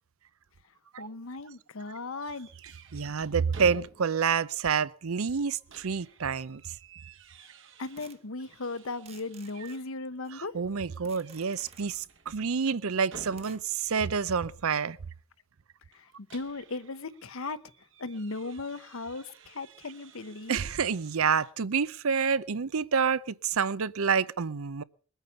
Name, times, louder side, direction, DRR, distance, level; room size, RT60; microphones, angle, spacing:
voice 1, 1.0-2.5 7.8-10.5 15.9-16.0 16.3-17.6 18.0-20.6, left 3 dB, 75° left, 0.9 m, -37 dB
sound 1, 2.2-4.3 4.7-4.8 5.3-9.9 10.3-10.6 10.9-13.9 15.9-21.5, right 4 dB, 60° right, 1.4 m, -54 dB
voice 2, 2.9-6.8 10.3-15.0 20.5-24.8, right 6 dB, 85° right, 0.6 m, -28 dB
sound 2, 6.4-6.5 8.0-8.3 8.9-10.4 11.0-12.0 13.4-13.9, right 6 dB, 30° right, 0.9 m, -54 dB
21.5 x 9.1 x 6.8 m
head